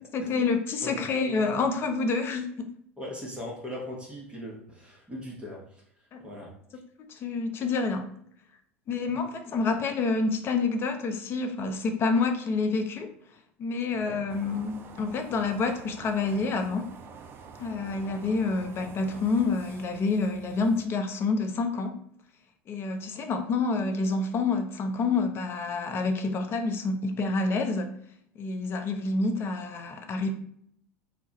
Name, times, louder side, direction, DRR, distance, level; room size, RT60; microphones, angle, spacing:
voice 1, 0.1-2.7 6.1-6.2 7.1-8.1 8.9-13.1 13.6-16.9 17.6-22.0 22.7-27.9 28.4-30.3, left 4 dB, 35° left, 7 dB, 0.5 m, -28 dB
voice 2, 0.8-1.5 3.0-5.8 6.2-6.5 13.9-14.2, equal, 15° right, -3 dB, 0.9 m, -40 dB
sound 1, 14.3-20.9, right 5 dB, 35° right, 0.4 m, -47 dB
2.3 x 2.1 x 3.9 m, 0.68 s
hypercardioid pair, 85°, 7 cm